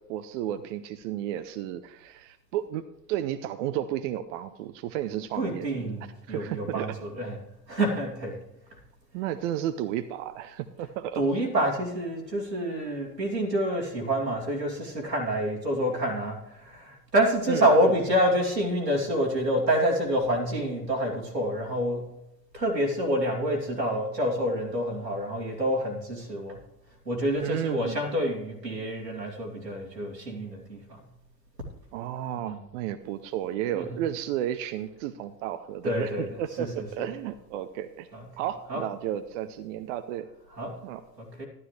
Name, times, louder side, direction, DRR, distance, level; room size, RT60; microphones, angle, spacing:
voice 1, 0.0-5.9 6.3-7.0 9.1-11.2 17.5-17.9 27.4-28.0 31.9-38.1 38.4-40.3 40.8-41.0, right 11 dB, 50° right, 10 dB, 0.7 m, -33 dB
voice 2, 5.4-7.4 7.7-8.4 11.1-22.1 22.5-26.6 27.0-31.0 32.4-32.6 33.7-33.9 35.8-36.3 36.6-37.1 38.1-38.2 38.7-38.8 40.6-40.8 41.2-41.5, equal, 90° right, -3 dB, 2.8 m, -27 dB
12.5 x 12.0 x 3.2 m, 0.87 s
figure-of-eight pair, 75°, 48 cm